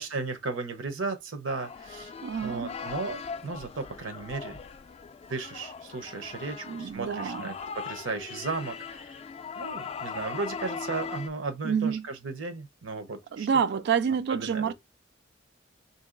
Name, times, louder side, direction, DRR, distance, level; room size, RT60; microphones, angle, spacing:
voice 1, 0.0-2.1 2.4-4.6 5.3-9.2 9.6-13.8 14.3-14.7, right 3 dB, 85° right, 0.8 m, -35 dB
sound 1, 1.5-11.3, left 5 dB, 35° left, 0.3 m, -40 dB
voice 2, 2.2-2.8 6.7-7.5 11.6-12.1 13.3-14.7, right 7 dB, 60° right, 0.3 m, -28 dB
3.0 x 2.8 x 3.7 m
head